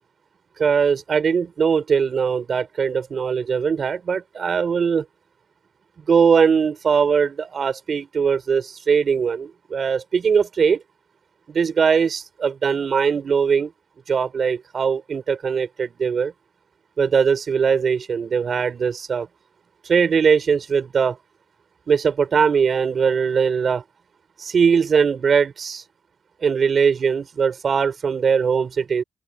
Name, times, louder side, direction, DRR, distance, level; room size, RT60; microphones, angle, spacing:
voice 1, 0.6-5.0 6.1-10.8 11.5-13.7 14.1-16.3 17.0-19.3 19.8-21.2 21.9-23.8 24.4-25.8 26.4-29.0, right 6 dB, 45° right, 5.3 m, -20 dB
open air
cardioid pair, 90°, 0 cm